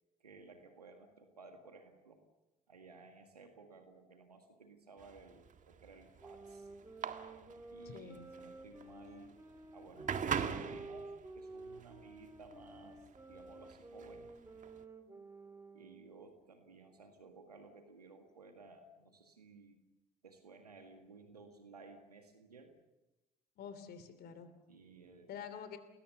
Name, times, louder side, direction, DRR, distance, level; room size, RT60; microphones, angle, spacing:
voice 1, 0.2-2.2 2.7-6.7 7.7-9.3 9.7-14.3 15.7-19.8 20.2-22.7 24.7-25.3, right 4 dB, 85° right, 6 dB, 1.8 m, -57 dB
sound 1, 5.0-14.8, right 7 dB, 40° right, 1.8 m, -42 dB
sound 2, 6.2-16.2, right 2 dB, 15° right, 3.7 m, -52 dB
voice 2, 7.8-8.3 23.6-24.5 25.3-25.8, left 7 dB, 55° left, 11 dB, 3.2 m, -47 dB
29.5 x 21.0 x 6.9 m, 1.0 s
figure-of-eight pair, 50°, 19 cm